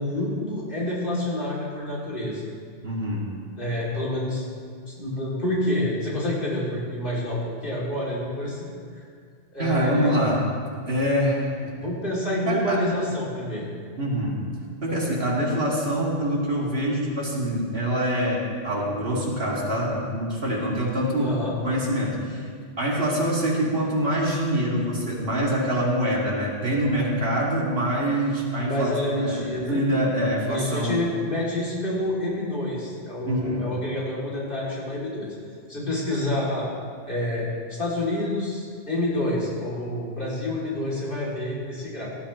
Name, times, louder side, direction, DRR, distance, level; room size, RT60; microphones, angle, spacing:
voice 1, 0.0-2.5 3.6-4.4 4.9-8.7 8.9-9.0 9.5-10.2 11.8-13.7 21.2-21.5 28.6-29.8 30.5-35.3 35.7-36.7 37.1-42.1, left 1 dB, 55° left, -7 dB, 3.4 m, -28 dB
voice 2, 2.8-3.3 9.6-10.5 10.9-11.7 12.4-12.9 14.0-14.4 14.8-21.4 21.6-22.5 22.8-31.0 33.2-33.7, equal, 65° right, -5 dB, 3.0 m, -25 dB
18.5 x 12.0 x 3.3 m, 2.1 s
omnidirectional pair, 1.1 m